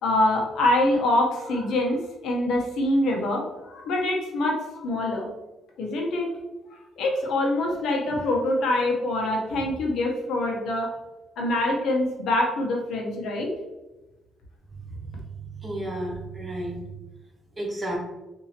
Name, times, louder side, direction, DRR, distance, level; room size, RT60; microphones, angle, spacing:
voice 1, 0.0-5.3 5.8-6.3 7.0-11.0 11.4-13.5, left 1 dB, 75° left, 0 dB, 0.9 m, -25 dB
voice 2, 14.7-15.2 15.6-16.8 17.6-18.0, right 1 dB, 20° right, -2 dB, 1.3 m, -32 dB
3.9 x 2.7 x 2.8 m, 1.0 s
cardioid pair, 90°, 0 cm